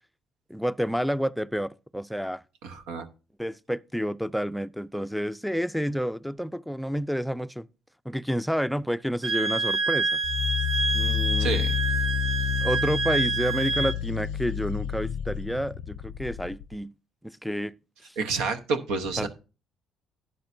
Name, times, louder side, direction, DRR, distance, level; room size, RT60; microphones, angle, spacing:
voice 1, 0.5-2.4 3.4-7.7 8.1-10.2 10.9-11.6 12.6-16.9 17.2-17.7 19.2-19.3, equal, ahead, 0.4 m, -29 dB
voice 2, 2.6-3.1 11.4-11.7 18.2-19.3, right 4 dB, 80° right, 1.0 m, -29 dB
Wind instrument woodwind instrument, 9.2-14.0, right 4 dB, 40° right, 0.8 m, -27 dB
sound 1, 10.2-16.8, left 11 dB, 80° left, 0.5 m, -30 dB
12.0 x 8.5 x 2.6 m
supercardioid pair, 60°, 0 cm